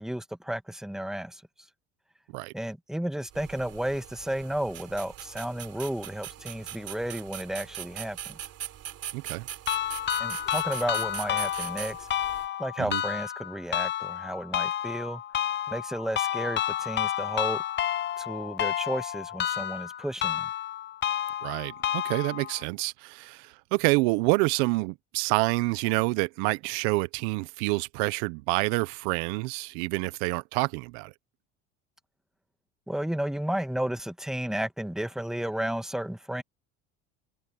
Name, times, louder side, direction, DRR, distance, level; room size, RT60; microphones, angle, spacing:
voice 1, 0.0-1.4 2.5-8.4 10.2-12.1 12.6-15.2 15.7-17.6 18.2-20.5 32.9-36.4, right 1 dB, ahead, 1.5 m, -33 dB
sound 1, 3.3-12.5, right 11 dB, 50° right, 3.4 m, -41 dB
voice 2, 9.1-9.5 12.8-13.0 21.4-31.1, right 25 dB, 75° right, 0.8 m, -27 dB
sound 2, 9.7-22.6, left 11 dB, 35° left, 0.7 m, -30 dB
supercardioid pair, 95°, 31 cm